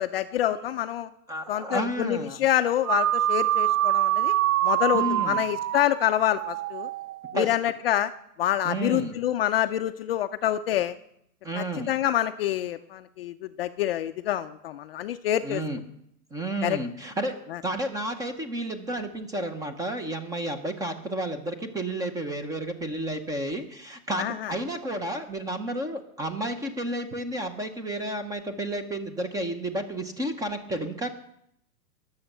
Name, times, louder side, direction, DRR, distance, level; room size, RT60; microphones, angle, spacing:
voice 1, 0.0-1.1 1.5-4.3 4.6-6.9 7.3-8.1 8.4-10.9 11.6-15.6 16.6-16.8 17.5-17.6 24.2-24.5, left 12 dB, 40° left, 10 dB, 0.5 m, -27 dB
voice 2, 1.3-2.4 4.9-5.5 7.3-7.6 8.6-9.2 11.4-11.9 15.4-15.8 16.3-17.3 17.6-31.1, right 1 dB, 10° right, 9 dB, 0.6 m, -31 dB
sound 1, 2.8-7.4, right 14 dB, 60° right, 0.6 m, -25 dB
21.5 x 7.2 x 6.6 m, 0.76 s
hypercardioid pair, 145°, 48 cm